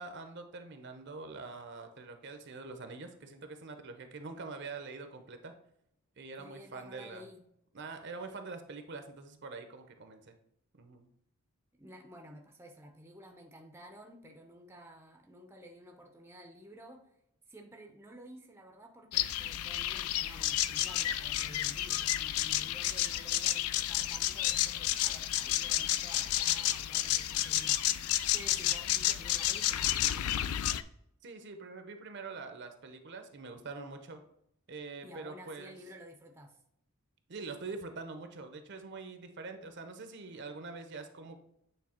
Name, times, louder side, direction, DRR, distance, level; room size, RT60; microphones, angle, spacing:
voice 1, 0.0-5.5 6.2-7.3 7.7-10.3 10.7-11.1 27.3-27.5 31.2-34.2 34.7-35.7 37.3-41.4, right 3 dB, 55° right, 7 dB, 0.7 m, -44 dB
voice 2, 6.4-7.4 11.8-17.2 17.5-30.8 35.0-36.6, equal, 10° right, 2 dB, 0.6 m, -52 dB
sound 1, 19.1-30.8, left 13 dB, 85° left, 0.4 m, -31 dB
8.6 x 3.3 x 4.3 m, 0.75 s
head